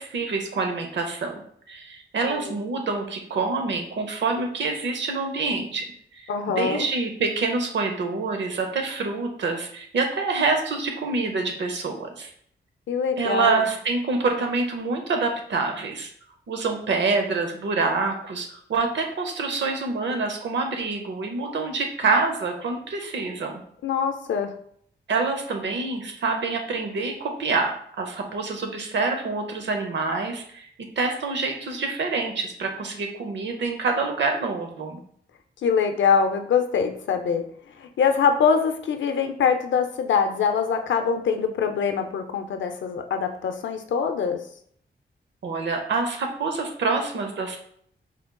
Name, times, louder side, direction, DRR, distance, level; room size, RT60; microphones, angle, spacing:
voice 1, 0.0-5.8 6.1-12.3 13.2-16.1 16.5-23.6 25.1-30.7 31.0-35.0 45.4-47.6, right 4 dB, 75° right, 4 dB, 0.7 m, -26 dB
voice 2, 6.3-6.9 12.9-13.6 23.8-24.5 35.6-37.4 37.8-44.4, left 6 dB, 90° left, 6 dB, 0.5 m, -23 dB
4.3 x 3.6 x 2.2 m, 0.64 s
wide cardioid pair, 155°, 19 cm